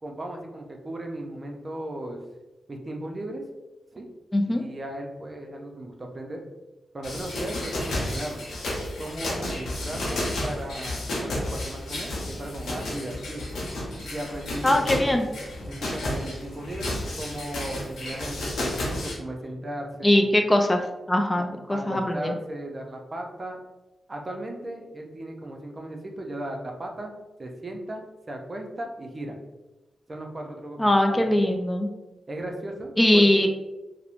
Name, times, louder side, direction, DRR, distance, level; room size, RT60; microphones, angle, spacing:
voice 1, 0.0-2.2 2.7-3.4 3.9-4.1 4.5-6.4 6.9-8.5 9.0-13.5 14.1-15.3 15.7-20.2 21.4-23.6 24.1-27.1 27.4-29.4 30.1-31.5 32.3-33.5, right 1 dB, 40° right, 2 dB, 0.5 m, -36 dB
voice 2, 4.3-4.6 14.6-15.3 20.0-20.8 21.1-22.3 30.8-31.9 33.0-33.5, left 1 dB, 20° left, 4 dB, 0.3 m, -21 dB
sound 1, 7.0-19.2, left 1 dB, 85° left, 0.6 m, -32 dB
2.9 x 2.0 x 2.4 m, 1.0 s
cardioid pair, 55°, 0 cm